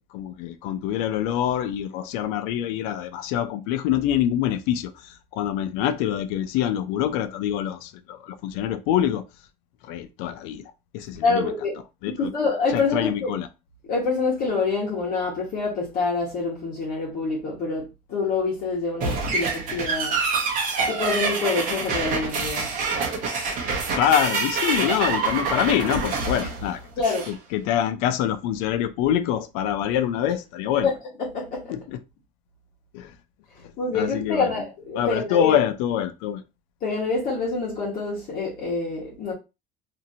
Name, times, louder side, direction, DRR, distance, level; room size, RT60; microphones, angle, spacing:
voice 1, 0.1-9.2 9.8-11.5 12.0-12.3 12.7-13.5 23.9-26.8 27.3-30.9 31.7-32.0 32.9-33.1 33.9-34.5 35.0-36.4, left 10 dB, 85° left, 0.4 m, -25 dB
voice 2, 11.2-11.7 12.1-13.3 13.9-20.2 20.9-22.7 26.4-26.5 27.0-27.2 30.8-30.9 31.2-31.7 33.8-35.6 36.8-39.3, left 4 dB, 50° left, 1.1 m, -26 dB
sound 1, 19.0-27.3, right 4 dB, 45° right, 0.8 m, -26 dB
2.8 x 2.5 x 2.7 m
cardioid pair, 150°, 19 cm